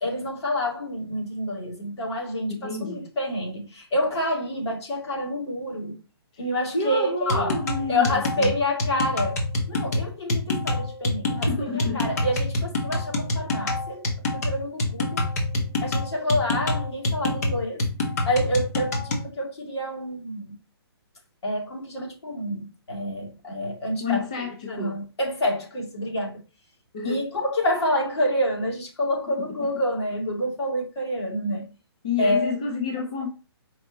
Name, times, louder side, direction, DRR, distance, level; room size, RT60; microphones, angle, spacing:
voice 1, 0.0-6.0 6.4-7.6 7.9-14.0 14.3-15.3 15.8-17.8 18.3-20.5 21.4-24.2 24.7-26.4 27.0-31.6 32.2-32.5, left 1 dB, 80° left, 2.2 m, -28 dB
voice 2, 2.5-3.1 6.3-6.4 6.7-8.5 11.5-12.1 24.0-25.0 26.9-27.3 32.0-33.3, left 4 dB, 15° left, 0.3 m, -29 dB
sound 1, 7.3-19.3, left 2 dB, 40° left, 0.8 m, -26 dB
4.5 x 2.7 x 3.8 m
hypercardioid pair, 175°, 14 cm